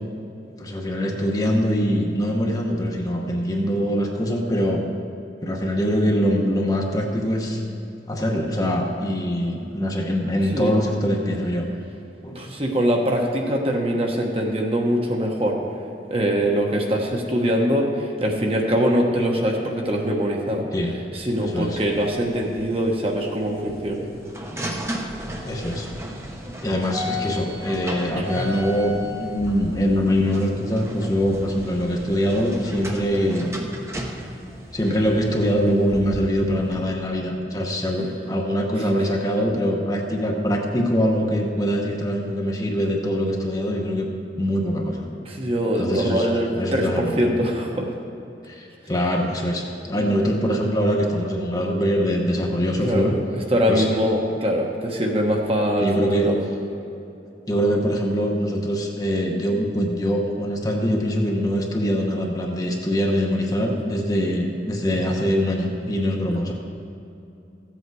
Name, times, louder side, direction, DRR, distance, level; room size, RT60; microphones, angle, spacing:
voice 1, 0.6-4.8 5.4-7.6 8.1-11.7 12.2-12.4 20.7-20.9 21.4-21.8 25.4-25.9 26.6-33.5 34.7-44.1 44.4-45.1 45.8-46.3 46.5-47.3 48.5-53.1 53.7-53.9 55.8-56.3 57.5-66.5, equal, 20° left, 0 dB, 1.0 m, -23 dB
voice 2, 12.3-15.6 16.1-20.7 21.1-24.1 28.1-28.5 45.2-47.9 52.8-53.1 53.5-56.4, equal, 35° right, 0 dB, 1.2 m, -23 dB
sound 1, 21.1-36.8, equal, 15° right, 0.9 m, -35 dB
14.0 x 8.1 x 4.8 m, 2.7 s
head